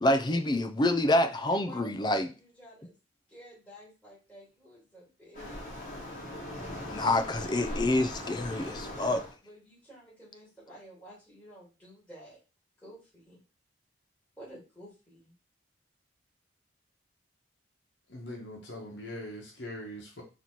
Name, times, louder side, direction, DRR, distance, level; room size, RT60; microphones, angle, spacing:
voice 1, 0.0-2.3 6.9-9.2, left 1 dB, 25° left, 0.4 m, -27 dB
voice 2, 1.5-2.9 3.3-5.6 9.4-12.4 12.8-13.4 14.4-15.3, equal, 5° left, 2.5 m, -51 dB
Waves surf, 5.3-9.3, left 1 dB, 40° left, 1.8 m, -39 dB
voice 3, 18.1-20.2, left 1 dB, 65° left, 1.2 m, -41 dB
4.1 x 2.9 x 4.3 m
head